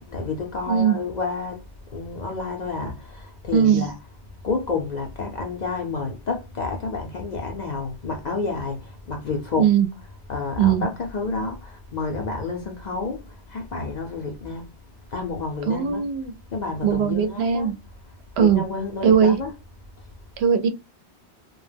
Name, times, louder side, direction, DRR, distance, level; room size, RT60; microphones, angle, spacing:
voice 1, 0.0-1.6 1.9-4.1 4.4-14.7 15.1-16.0 16.5-17.7 18.4-19.6, left 4 dB, 55° left, 0.5 m, -30 dB
voice 2, 3.5-3.9 9.6-9.9 10.6-10.9 15.7-16.3 16.8-17.7 18.4-18.7 19.0-19.4 20.4-20.7, right 8 dB, 75° right, 0.8 m, -19 dB
2.2 x 2.0 x 3.2 m
omnidirectional pair, 1.1 m